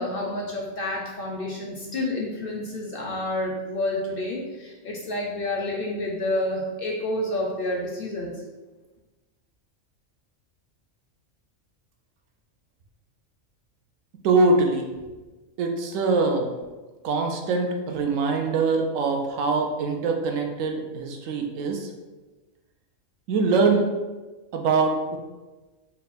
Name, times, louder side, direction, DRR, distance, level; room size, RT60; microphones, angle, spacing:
voice 1, 0.0-8.3, left 1 dB, 60° left, -1 dB, 0.6 m, -29 dB
voice 2, 14.2-14.9 15.6-16.5 17.0-21.9 23.3-23.8 24.5-25.2, right 3 dB, 80° right, 3 dB, 1.0 m, -23 dB
4.2 x 2.2 x 4.0 m, 1.2 s
omnidirectional pair, 1.3 m